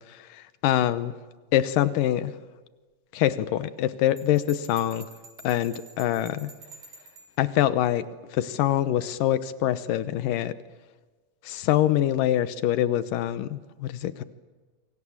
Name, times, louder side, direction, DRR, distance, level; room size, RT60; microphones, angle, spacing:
voice 1, 0.6-1.1 1.5-2.3 3.1-5.1 5.4-6.5 7.4-8.1 8.3-10.5 11.5-14.2, left 12 dB, 85° left, 13 dB, 2.6 m, -24 dB
Bell, 4.2-7.4, right 3 dB, 85° right, 5.4 m, -48 dB
28.5 x 24.5 x 7.3 m, 1.3 s
omnidirectional pair, 3.8 m